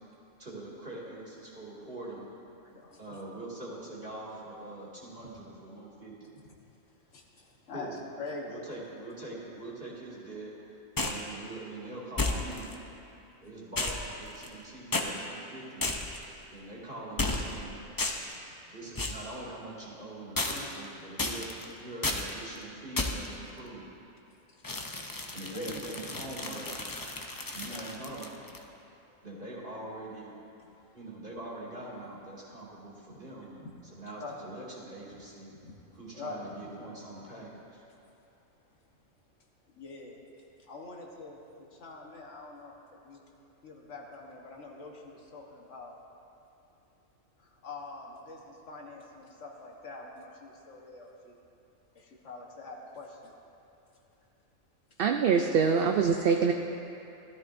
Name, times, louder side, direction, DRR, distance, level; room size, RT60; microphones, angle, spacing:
voice 1, 0.4-2.3 3.0-6.3 7.7-8.0 8.5-10.5 11.0-12.7 13.4-15.9 16.5-17.8 18.7-21.5 21.8-23.9 25.3-26.8 27.5-28.3 29.2-30.4 30.9-33.5 33.8-35.5 35.9-37.8, right 2 dB, 40° right, -6 dB, 2.4 m, -43 dB
voice 2, 7.7-8.5 25.5-25.8 27.7-27.9 33.1-33.2 33.6-33.7 34.2-34.4 35.5-35.7 36.1-36.8 39.8-40.2 40.7-41.4 41.8-42.7 43.0-43.2 43.6-45.9 47.6-51.3 51.9-53.3, left 3 dB, 65° left, 0 dB, 1.5 m, -44 dB
sound 1, 11.0-11.3 12.2-12.7 13.8-14.6 14.9-15.1 15.8-16.2 17.2-17.6 18.0-18.4 19.0-19.3 20.4-20.8 21.2-21.6 22.0-22.3 23.0-23.3 24.6-28.6, left 2 dB, 30° left, 0.4 m, -33 dB
voice 3, 55.0-56.5, right 6 dB, 65° right, 4 dB, 0.6 m, -24 dB
15.5 x 12.5 x 2.6 m, 2.8 s
omnidirectional pair, 1.4 m